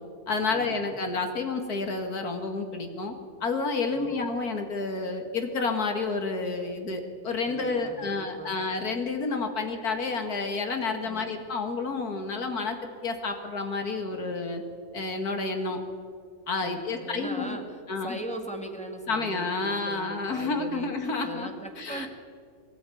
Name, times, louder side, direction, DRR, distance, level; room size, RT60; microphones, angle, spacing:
voice 1, 0.3-3.2 3.4-12.8 13.0-14.6 14.9-15.8 16.5-17.6 17.9-18.2 19.1-21.5 21.8-22.1, left 3 dB, 90° left, 5 dB, 2.5 m, -30 dB
voice 2, 3.9-4.2 7.5-8.6 11.1-11.3 16.6-20.9 21.2-22.1, right 1 dB, 5° left, 2 dB, 1.9 m, -39 dB
21.0 x 13.5 x 9.3 m, 2.2 s
omnidirectional pair, 1.6 m